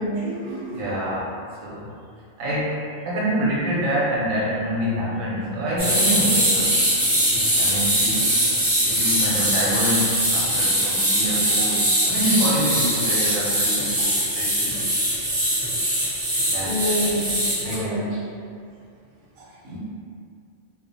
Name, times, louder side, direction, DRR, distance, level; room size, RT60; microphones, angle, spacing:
voice 1, 0.0-0.8 16.6-18.1 19.4-19.5, equal, 55° right, -6 dB, 0.7 m, -28 dB
voice 2, 0.7-1.3 1.6-1.9 2.4-6.8 7.6-8.3 8.8-14.8 16.4-17.0 17.5-18.2 19.6-19.8, equal, 90° right, -7 dB, 1.1 m, -26 dB
sound 1, 5.8-17.8, equal, 30° right, 0.9 m, -22 dB
2.4 x 2.3 x 2.6 m, 2.2 s
omnidirectional pair, 1.4 m